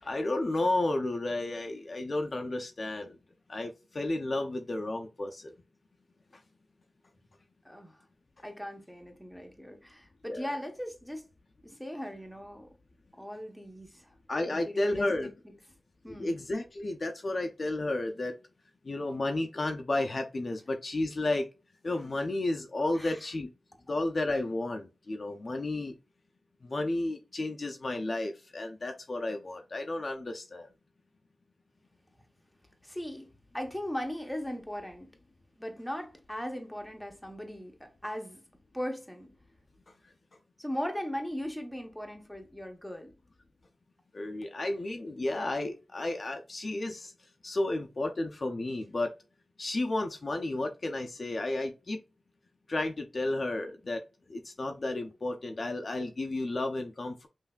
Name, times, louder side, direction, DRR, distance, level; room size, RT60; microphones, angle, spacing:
voice 1, 0.0-3.2 3.5-5.5 10.3-10.5 14.3-15.3 16.1-18.3 18.9-21.5 21.8-23.5 23.9-25.9 26.6-30.7 44.1-47.1 47.4-49.1 49.6-52.0 52.7-54.0 54.3-57.3, left 2 dB, 40° left, 0.5 m, -32 dB
voice 2, 7.6-8.0 8.4-11.3 11.6-12.7 13.2-14.1 14.5-15.3 16.0-16.3 22.9-23.3 32.8-35.1 35.6-38.4 38.7-39.3 40.6-43.1, equal, 5° left, 0.8 m, -38 dB
5.5 x 2.6 x 2.3 m
wide cardioid pair, 135°, 0 cm